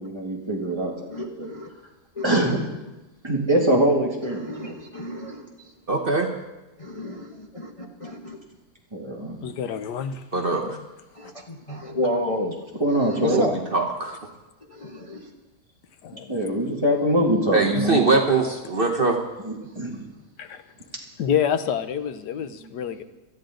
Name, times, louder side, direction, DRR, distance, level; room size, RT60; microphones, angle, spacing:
voice 1, 0.0-1.1 1.4-1.5 2.2-2.6 3.2-4.7 8.9-9.4 12.8-13.4 16.3-18.0 19.4-20.0, right 1 dB, 15° right, -2 dB, 2.2 m, -23 dB
voice 2, 1.1-1.7 2.1-2.7 4.2-6.2 6.8-8.4 10.6-10.8 11.1-12.6 12.9-13.6 14.6-15.3 19.6-19.8, left 1 dB, 25° left, 1 dB, 1.0 m, -31 dB
voice 3, 5.9-6.3 10.3-10.6 13.3-13.5 13.7-14.2 17.5-19.2, right 3 dB, 40° right, 1 dB, 1.1 m, -22 dB
voice 4, 9.4-10.2 10.7-10.9 16.0-16.4 20.4-20.6 21.2-23.0, left 8 dB, 90° left, 10 dB, 1.5 m, -27 dB
18.0 x 13.5 x 3.9 m, 1.1 s
omnidirectional pair, 1.7 m